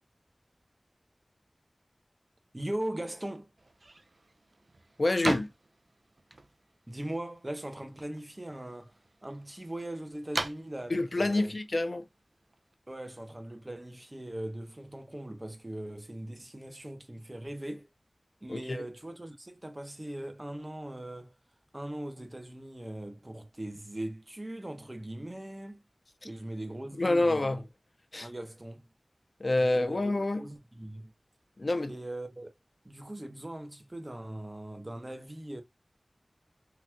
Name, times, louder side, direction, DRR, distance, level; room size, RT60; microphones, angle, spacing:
voice 1, 2.5-3.5 6.9-11.5 12.9-17.9 18.4-21.4 21.7-25.8 26.2-27.6 28.2-28.9 29.6-30.0 30.4-31.1 31.9-32.5 32.8-35.6, right 1 dB, 30° right, 0.9 m, -40 dB
sound 1, 3.6-12.7, right 2 dB, 65° right, 0.5 m, -41 dB
voice 2, 5.0-5.5 10.9-12.0 18.5-18.8 27.0-27.6 28.1-28.3 29.4-30.5 31.6-31.9, left 2 dB, 60° left, 0.6 m, -27 dB
3.8 x 3.0 x 2.2 m
wide cardioid pair, 55°, 0 cm